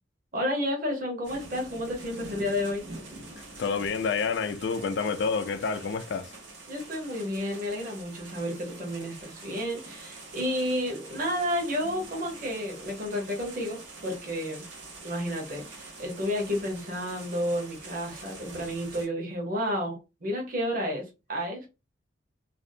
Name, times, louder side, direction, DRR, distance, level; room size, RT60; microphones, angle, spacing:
voice 1, 0.3-2.8 6.7-14.6 15.0-21.0 21.3-21.7, equal, 50° right, 0.9 m, -31 dB
sound 1, 1.2-19.1, right 2 dB, 85° right, 1.0 m, -45 dB
voice 2, 3.4-6.3, left 5 dB, 75° left, 0.4 m, -29 dB
2.6 x 2.0 x 2.6 m
head